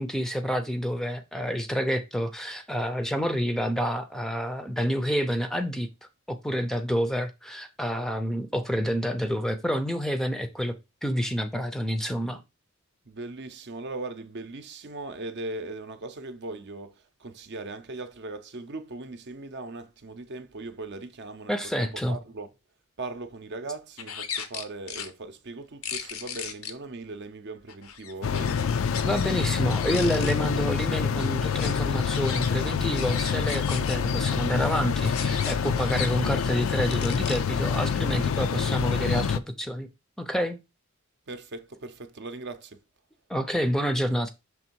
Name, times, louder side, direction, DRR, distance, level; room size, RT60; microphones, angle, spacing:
voice 1, 0.0-5.9 6.3-10.7 11.0-12.4 21.5-22.2 29.0-39.9 40.2-40.6 43.3-44.3, equal, ahead, 0.5 m, -28 dB
voice 2, 13.0-22.5 23.0-28.7 41.3-42.8, right 2 dB, 55° right, 0.7 m, -39 dB
sound 1, 24.0-25.1 25.8-26.7 27.7-29.3 29.5-30.4 30.7-34.0 35.0-36.1 36.9-37.4, left 8 dB, 85° left, 0.8 m, -37 dB
sound 2, 28.2-39.4, left 6 dB, 70° left, 0.4 m, -26 dB
6.1 x 3.4 x 4.5 m
head